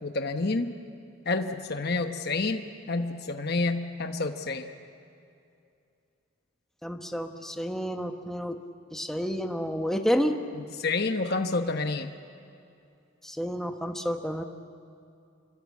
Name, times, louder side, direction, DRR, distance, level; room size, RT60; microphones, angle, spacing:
voice 1, 0.0-0.8 1.2-4.7 10.5-12.1, left 3 dB, 50° left, 6 dB, 1.1 m, -29 dB
voice 2, 6.8-8.6 8.9-10.4 13.2-14.4, equal, ahead, 5 dB, 1.1 m, -30 dB
28.5 x 24.0 x 8.5 m, 2.6 s
head